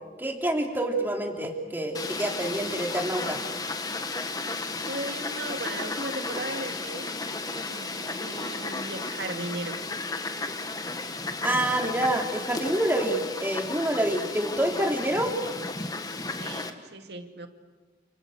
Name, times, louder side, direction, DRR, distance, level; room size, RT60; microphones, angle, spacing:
voice 1, 0.2-3.4 11.4-15.3, right 1 dB, 10° right, 2 dB, 3.2 m, -27 dB
Fowl, 1.9-16.7, left 3 dB, 20° left, 1.6 m, -34 dB
voice 2, 4.8-7.1 7.5-9.8 16.3-17.5, right 2 dB, 70° right, 6 dB, 2.4 m, -37 dB
29.5 x 29.0 x 6.5 m, 1.3 s
head